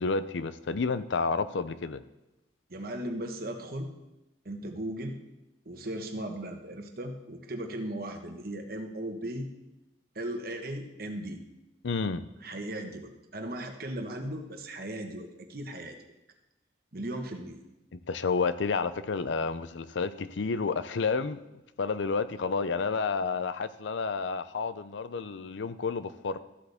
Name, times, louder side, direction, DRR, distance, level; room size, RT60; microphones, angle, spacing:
voice 1, 0.0-2.0 11.8-12.3 17.9-21.4 21.8-26.4, left 4 dB, 80° left, 13 dB, 0.5 m, -30 dB
voice 2, 2.7-3.9 4.4-5.2 5.6-9.5 10.1-11.4 12.4-16.0 16.9-17.6, right 1 dB, 55° right, 5 dB, 1.2 m, -37 dB
14.0 x 8.0 x 3.5 m, 0.96 s
head